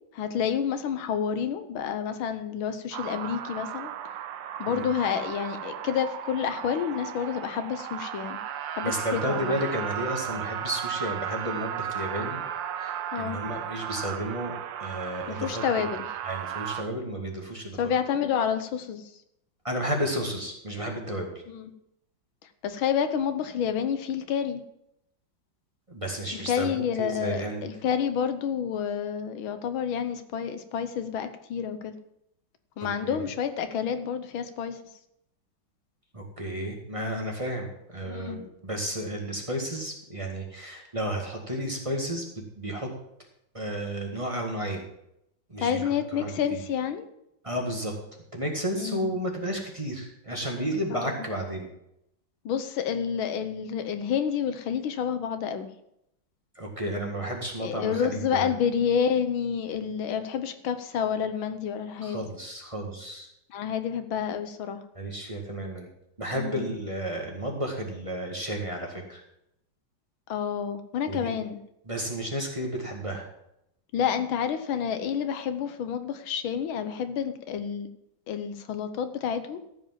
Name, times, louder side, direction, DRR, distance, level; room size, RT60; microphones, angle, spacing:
voice 1, 0.1-3.9 4.6-8.4 8.7-9.5 13.1-13.4 15.3-16.0 17.8-19.1 21.5-21.7 22.6-24.6 26.5-32.0 32.8-34.8 38.0-38.4 45.6-47.0 48.8-49.1 50.9-51.1 52.5-55.7 57.6-62.2 63.5-64.8 66.3-66.7 70.3-71.6 73.9-77.9 78.3-79.6, left 8 dB, 90° left, 9 dB, 1.8 m, -29 dB
sound 1, 2.9-16.8, right 9 dB, 75° right, 1.4 m, -35 dB
voice 2, 8.8-12.4 12.8-14.5 14.8-15.6 16.2-17.8 19.6-21.4 25.9-27.6 33.0-33.2 36.1-42.9 43.5-44.8 45.5-45.8 46.1-46.6 47.4-47.9 48.3-51.7 56.5-58.5 62.0-63.3 64.9-65.9 66.2-69.2 71.1-71.4 71.8-73.3, right 1 dB, 15° right, 0 dB, 1.7 m, -32 dB
14.0 x 5.2 x 7.3 m, 0.79 s
omnidirectional pair, 2.1 m